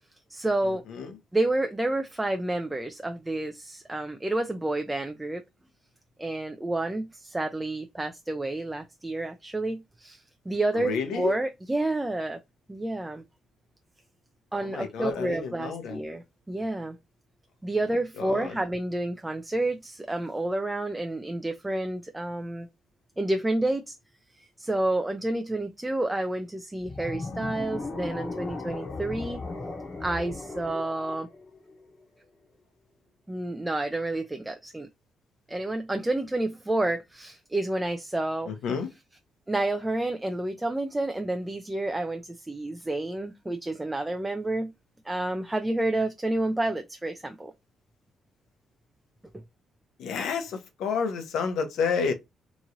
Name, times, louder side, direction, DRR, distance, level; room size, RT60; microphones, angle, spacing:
voice 1, 0.3-0.8 1.3-5.4 6.2-12.4 12.7-13.2 14.5-17.0 17.6-22.7 23.2-24.0 24.6-29.4 30.0-31.3 33.3-34.9 35.5-38.5 39.5-44.7 45.0-47.5, right 2 dB, 10° right, 0.4 m, -29 dB
voice 2, 10.7-11.3 14.6-16.0 18.2-18.5 38.5-38.9 50.0-52.1, left 5 dB, 80° left, 0.7 m, -30 dB
sound 1, 26.8-32.0, left 3 dB, 30° left, 0.8 m, -37 dB
3.0 x 2.4 x 2.7 m
cardioid pair, 90°, 0 cm